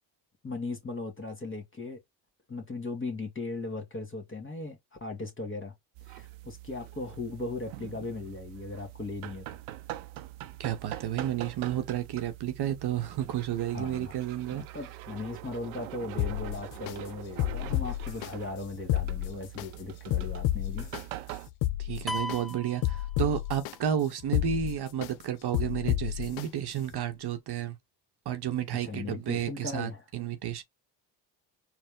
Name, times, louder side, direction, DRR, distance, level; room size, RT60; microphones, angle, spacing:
voice 1, 0.4-2.0 2.5-5.7 6.1-9.4 13.7-14.1 14.5-20.9 28.8-30.0, left 3 dB, 25° left, 1.8 m, -38 dB
sound 1, 5.9-21.5, right 15 dB, 90° right, 0.6 m, -44 dB
voice 2, 10.6-14.6 21.8-27.8 28.3-30.6, right 10 dB, 50° right, 0.9 m, -31 dB
sound 2, 16.2-16.9 17.4-18.3 18.8-19.7 20.1-21.0 21.5-22.4 22.8-23.7 24.2-25.1 25.5-26.4 26.9-27.0, left 14 dB, 70° left, 0.6 m, -30 dB
sound 3, 22.1-23.8, left 2 dB, ahead, 0.7 m, -37 dB
4.1 x 2.2 x 3.7 m
supercardioid pair, 65°, 48 cm